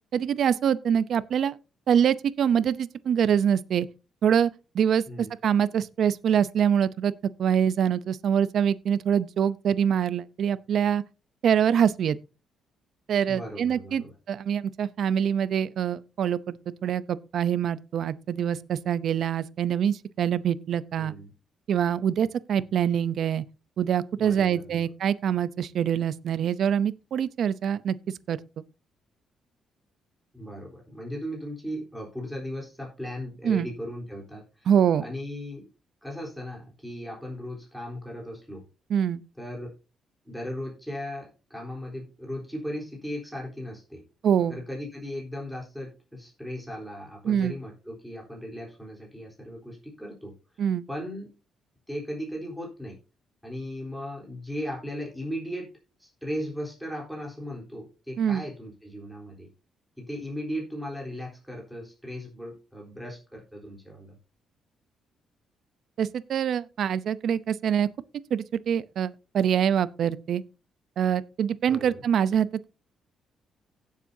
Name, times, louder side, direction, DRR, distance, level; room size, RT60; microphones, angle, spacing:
voice 1, 0.1-1.6 1.9-3.9 4.2-4.5 4.7-7.1 7.4-11.0 11.4-12.2 13.1-16.6 16.8-21.1 21.7-23.4 23.8-28.0 28.3-28.4 33.4-33.7 34.7-35.0 38.9-39.2 44.2-44.6 47.2-47.5 50.6-50.9 58.2-58.4 66.0-67.9 68.3-70.4 71.0-72.5, right 8 dB, 60° right, 0.6 m, -24 dB
voice 2, 13.3-14.1 21.0-21.3 24.2-24.8 30.3-34.7 35.0-35.7 36.0-38.6 39.4-39.7 40.2-44.0 44.5-51.3 51.9-53.0 53.4-55.7 56.0-59.5 60.0-64.1 71.7-72.0, equal, ahead, 3.8 m, -37 dB
16.5 x 7.4 x 2.7 m
cardioid pair, 130°, 0 cm